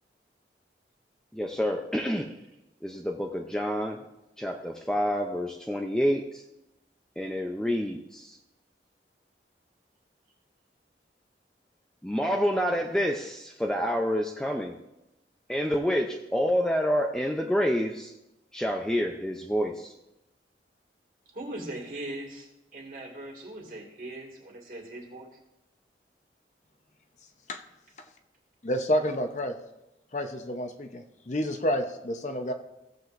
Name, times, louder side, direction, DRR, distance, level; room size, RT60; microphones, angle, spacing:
voice 1, 1.3-2.3 2.8-4.0 4.4-6.4 7.2-8.4 12.0-14.8 15.5-18.1 18.5-19.9, equal, 5° left, 1 dB, 0.5 m, -28 dB
voice 2, 21.3-25.3, right 1 dB, 50° right, 0 dB, 2.2 m, -40 dB
voice 3, 28.6-29.6 30.1-32.5, equal, 40° left, 5 dB, 0.7 m, -29 dB
16.0 x 7.8 x 2.6 m, 0.92 s
head